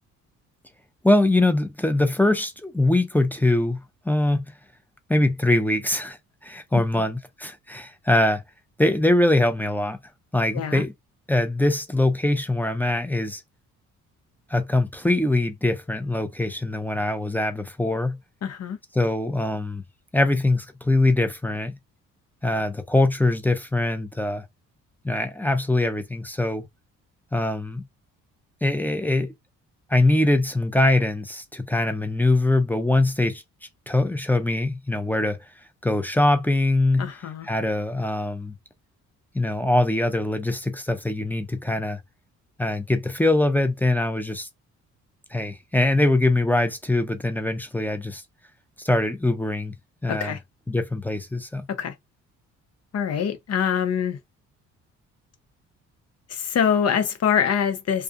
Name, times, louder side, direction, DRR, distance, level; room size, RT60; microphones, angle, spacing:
voice 1, 1.0-3.8 4.0-4.4 5.1-6.2 6.4-8.4 8.8-10.0 10.3-10.9 11.3-13.4 14.5-18.2 18.9-19.8 20.1-21.8 22.4-24.5 25.0-26.6 27.3-27.8 28.6-29.3 29.9-33.4 33.9-35.4 35.8-37.1 37.4-38.5 39.3-42.0 42.6-44.5 45.3-48.2 48.8-49.7 50.0-50.4 50.7-51.7, left 2 dB, 5° left, 0.7 m, -22 dB
voice 2, 10.5-10.8 18.4-18.8 37.0-37.5 50.1-50.4 51.7-51.9 52.9-54.2 56.3-58.0, left 7 dB, 55° left, 0.9 m, -24 dB
2.3 x 2.3 x 2.5 m
cardioid pair, 90°, 30 cm